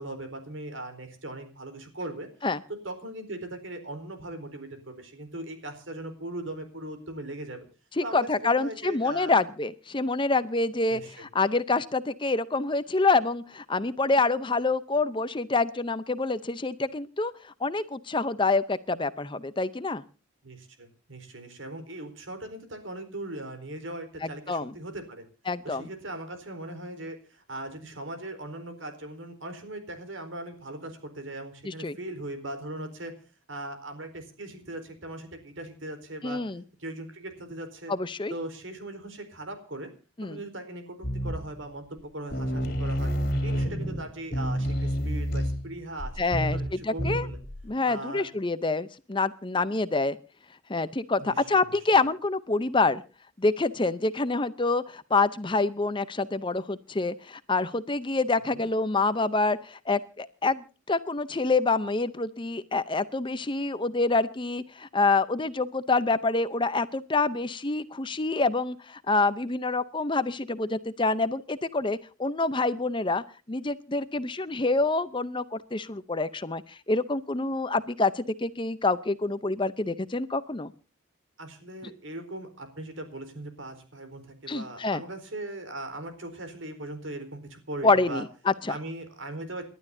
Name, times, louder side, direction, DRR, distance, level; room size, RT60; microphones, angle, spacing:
voice 1, 0.0-2.3 2.7-7.7 8.0-9.4 10.9-11.2 20.4-25.3 25.6-33.1 33.5-36.4 36.8-37.9 38.3-39.9 40.2-43.1 43.4-47.4 47.8-48.3 51.2-51.6 58.5-58.7 81.4-88.2 88.7-89.6, right 1 dB, 65° right, 8 dB, 4.2 m, -39 dB
voice 2, 8.0-20.0 24.5-24.7 25.5-25.8 31.6-32.0 36.2-36.6 37.9-38.3 40.2-40.4 46.2-47.3 47.6-50.2 50.7-53.0 53.4-80.7 84.5-85.0 87.8-88.7, left 3 dB, 25° left, 14 dB, 0.7 m, -27 dB
sound 1, 41.0-41.6 42.0-42.1 42.3-47.7, equal, 50° left, 3.0 m, -29 dB
29.0 x 12.0 x 2.7 m, 0.36 s
head